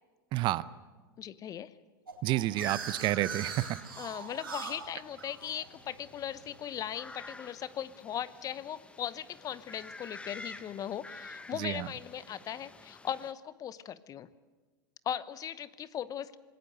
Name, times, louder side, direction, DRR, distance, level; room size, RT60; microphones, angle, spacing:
voice 1, 0.3-0.6 2.2-3.8 11.6-11.9, right 16 dB, 40° right, 17 dB, 0.7 m, -30 dB
voice 2, 1.2-1.7 4.0-14.3 15.0-16.4, left 10 dB, 30° left, 16 dB, 0.9 m, -38 dB
sound 1, 2.1-6.9, right 5 dB, 85° right, 3.2 m, -41 dB
sound 2, 2.4-13.3, left 3 dB, 10° left, 1.1 m, -51 dB
27.0 x 19.0 x 6.7 m, 1.3 s
hypercardioid pair, 95°, 12 cm